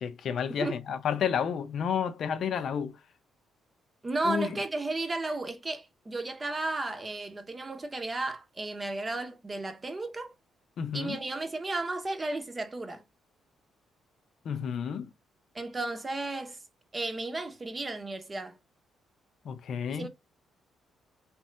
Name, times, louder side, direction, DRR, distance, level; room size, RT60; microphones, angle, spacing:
voice 1, 0.0-3.0 4.2-4.6 10.8-11.2 14.4-15.1 19.4-20.1, left 7 dB, 65° left, 0.6 m, -31 dB
voice 2, 4.0-10.3 10.9-13.0 15.5-16.6 16.9-18.6 19.9-20.1, right 2 dB, 25° right, 0.8 m, -34 dB
3.2 x 3.1 x 3.3 m
cardioid pair, 90°, 0 cm